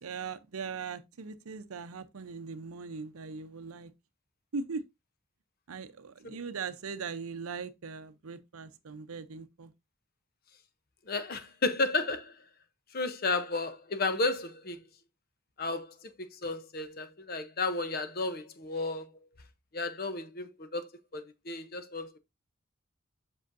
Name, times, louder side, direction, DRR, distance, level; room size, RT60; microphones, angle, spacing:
voice 1, 0.0-3.9 4.5-4.8 5.7-9.7, right 5 dB, 85° right, 0.6 m, -40 dB
voice 2, 11.1-12.3 12.9-14.8 15.6-15.9 16.4-19.1 19.7-22.2, left 3 dB, 45° left, 0.7 m, -33 dB
7.6 x 6.2 x 2.5 m
head